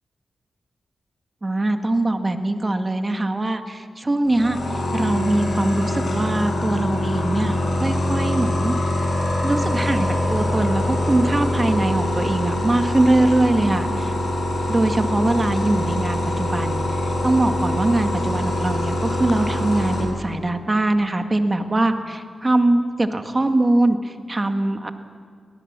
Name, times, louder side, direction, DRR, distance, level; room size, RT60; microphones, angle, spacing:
voice 1, 1.4-4.6 4.9-8.7 9.4-14.1 14.7-24.9, right 2 dB, 30° right, 7 dB, 1.9 m, -22 dB
sound 1, 4.3-20.0, left 1 dB, 80° left, 6.4 m, -24 dB
24.0 x 18.5 x 7.5 m, 2.2 s
cardioid pair, 55°, 0 cm